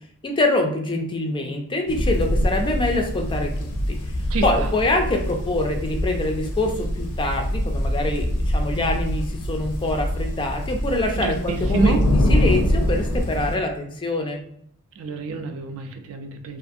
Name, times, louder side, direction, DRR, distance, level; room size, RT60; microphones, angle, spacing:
voice 1, 0.2-4.0 4.4-14.4, left 2 dB, 20° left, 3 dB, 0.3 m, -25 dB
sound 1, 1.9-13.6, equal, 85° left, 0.6 m, -24 dB
voice 2, 4.3-4.7 11.1-12.0 14.9-16.6, right 3 dB, 65° right, 6 dB, 0.4 m, -27 dB
2.5 x 2.4 x 2.6 m, 0.68 s
head